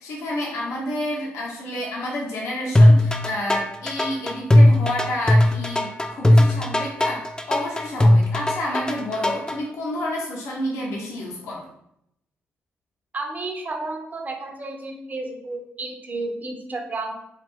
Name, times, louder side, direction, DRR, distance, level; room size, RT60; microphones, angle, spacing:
voice 1, 0.0-11.6, left 1 dB, 75° left, -3 dB, 0.8 m, -29 dB
sound 1, 2.8-9.6, left 1 dB, 15° left, 0.4 m, -17 dB
voice 2, 13.1-17.2, right 2 dB, 35° right, 3 dB, 0.6 m, -32 dB
2.5 x 2.5 x 3.4 m, 0.76 s
hypercardioid pair, 45°, 5 cm